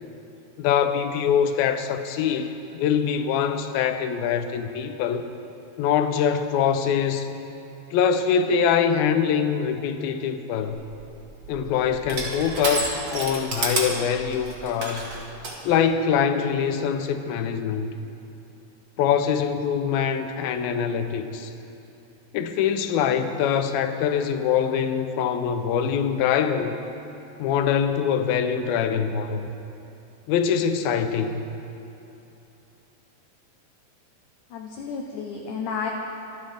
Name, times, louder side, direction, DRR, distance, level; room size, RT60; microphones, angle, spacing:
voice 1, 0.6-5.3 5.8-7.3 7.9-10.8 11.5-15.1 15.6-17.9 19.0-21.5 22.3-26.8 27.4-29.5 30.3-31.5, left 7 dB, 85° left, 8 dB, 2.6 m, -24 dB
Crushing, 10.7-15.6, right 2 dB, 40° right, 2.1 m, -31 dB
voice 2, 34.5-35.9, left 6 dB, 70° left, 0 dB, 2.2 m, -31 dB
26.0 x 13.0 x 3.5 m, 2.9 s
omnidirectional pair, 4.2 m